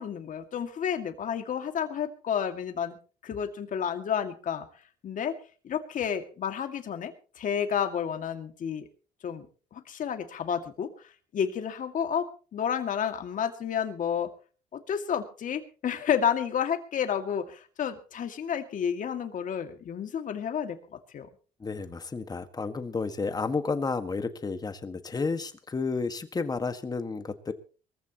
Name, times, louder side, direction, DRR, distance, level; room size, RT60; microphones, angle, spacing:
voice 1, 0.0-3.0 3.2-4.7 5.0-5.4 5.6-8.9 9.2-9.5 9.7-10.9 11.3-12.3 12.5-14.3 14.7-20.8 21.1-21.3, left 8 dB, 50° left, 6 dB, 2.2 m, -30 dB
voice 2, 21.6-27.5, left 4 dB, 25° left, 9 dB, 1.7 m, -31 dB
23.0 x 14.5 x 3.0 m, 0.37 s
cardioid pair, 110°, 17 cm